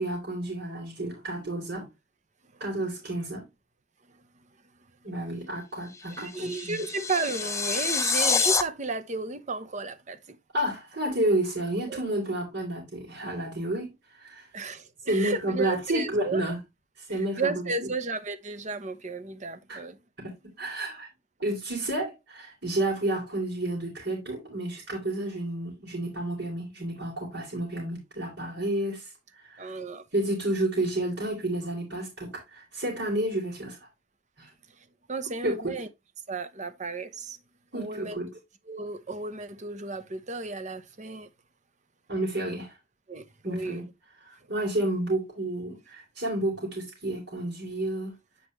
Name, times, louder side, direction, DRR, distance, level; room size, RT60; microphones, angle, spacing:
voice 1, 0.0-1.9 2.6-3.4 5.0-6.8 10.5-13.9 14.2-14.5 15.1-16.6 17.1-17.9 19.7-19.8 20.2-20.3 20.6-21.1 21.4-29.1 29.4-29.7 30.1-33.8 34.4-34.5 35.4-35.7 37.7-38.3 42.1-42.7 43.4-43.9 44.2-48.1, right 1 dB, 60° right, 3.7 m, -30 dB
sound 1, 5.9-8.6, left 5 dB, 15° left, 0.6 m, -27 dB
voice 2, 6.2-10.4 11.9-12.0 14.5-16.4 17.1-20.0 29.6-30.0 35.1-35.9 36.3-37.4 37.7-38.2 38.7-41.3 43.1-43.8, right 3 dB, 40° right, 0.8 m, -33 dB
9.1 x 5.0 x 3.2 m
head